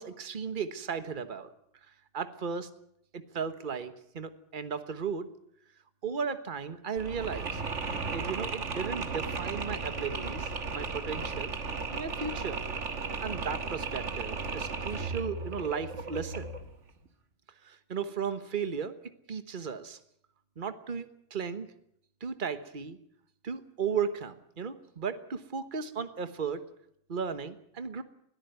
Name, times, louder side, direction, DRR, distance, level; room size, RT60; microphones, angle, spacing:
voice 1, 0.0-1.5 1.9-2.7 3.1-5.3 6.0-7.6 8.1-11.5 11.9-12.6 13.2-16.5 17.6-18.9 19.3-20.0 20.6-21.7 22.2-23.0 23.4-26.7 27.1-28.0, right 6 dB, 40° right, 10 dB, 1.4 m, -35 dB
Mechanisms, 7.0-16.7, right 4 dB, 70° right, 1.9 m, -35 dB
21.5 x 13.5 x 9.4 m, 0.73 s
omnidirectional pair, 1.3 m